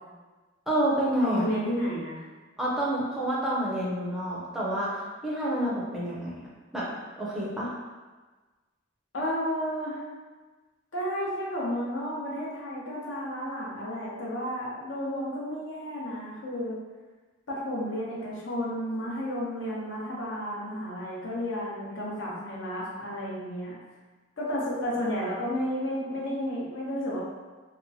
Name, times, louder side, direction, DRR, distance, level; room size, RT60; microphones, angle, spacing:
voice 1, 0.7-1.5 2.6-6.3 6.7-7.7, right 1 dB, ahead, -7 dB, 0.4 m, -28 dB
voice 2, 1.2-2.2 9.1-10.0 10.9-16.8 17.5-23.7 24.4-27.2, equal, 80° left, -5 dB, 0.7 m, -32 dB
2.8 x 2.1 x 2.6 m, 1.3 s
head